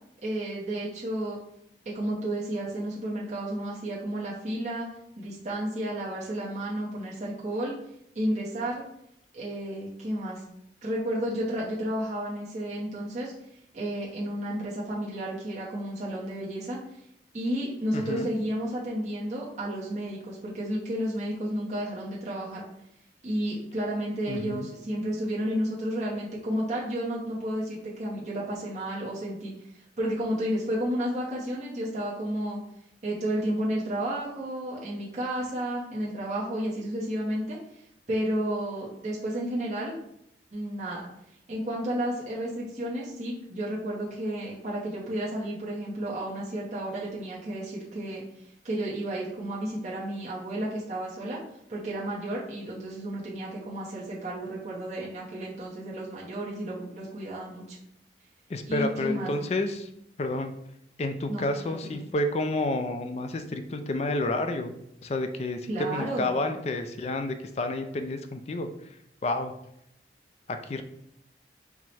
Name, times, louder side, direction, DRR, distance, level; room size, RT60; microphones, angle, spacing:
voice 1, 0.2-1.4 1.8-4.9 5.2-7.8 8.1-8.8 9.3-10.4 10.8-13.3 13.7-16.8 17.3-22.7 23.2-32.6 33.0-37.6 38.1-40.0 40.5-41.0 41.5-51.4 51.7-57.8 58.7-59.4 61.3-62.0 65.7-66.4, right 1 dB, 40° right, -6 dB, 0.8 m, -32 dB
voice 2, 17.9-18.3 24.3-24.7 58.5-59.9 60.2-60.5 61.0-64.7 65.0-68.7 69.2-69.5 70.5-70.8, left 2 dB, 35° left, 7 dB, 0.3 m, -30 dB
4.6 x 2.1 x 4.2 m, 0.76 s
head